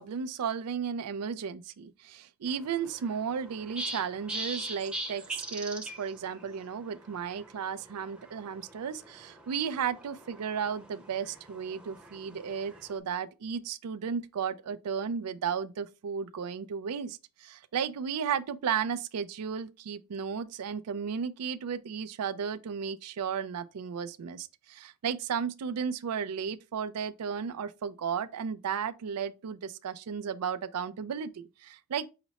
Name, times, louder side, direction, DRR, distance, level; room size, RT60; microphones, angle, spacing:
voice 1, 0.0-32.1, right 7 dB, 85° right, 0.4 m, -34 dB
sound 1, 2.5-13.0, right 1 dB, 5° right, 0.7 m, -43 dB
5.8 x 2.0 x 4.0 m
head